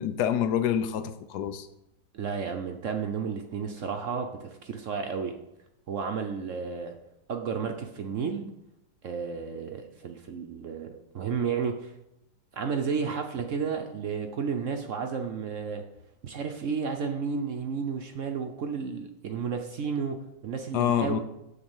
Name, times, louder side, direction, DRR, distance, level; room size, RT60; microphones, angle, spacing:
voice 1, 0.0-1.7 20.7-21.2, left 9 dB, 70° left, 1.2 m, -27 dB
voice 2, 2.1-5.4 5.9-6.9 7.3-8.5 9.0-11.9 12.5-15.8 16.2-21.2, right 6 dB, 60° right, 0.9 m, -32 dB
9.1 x 3.9 x 7.2 m
omnidirectional pair, 1.9 m